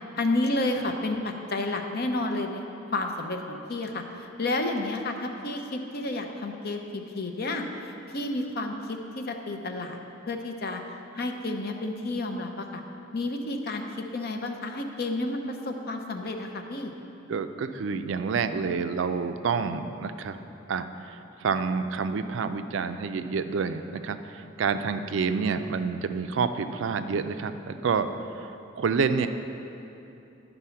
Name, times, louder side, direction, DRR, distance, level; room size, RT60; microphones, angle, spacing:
voice 1, 0.1-2.6 2.9-10.0 10.3-12.8 13.1-16.9, left 2 dB, 50° left, 4 dB, 0.6 m, -31 dB
voice 2, 17.3-20.4 20.7-28.1 28.4-28.5 28.8-29.3, right 5 dB, 65° right, 9 dB, 0.4 m, -28 dB
10.5 x 4.0 x 5.7 m, 2.8 s
head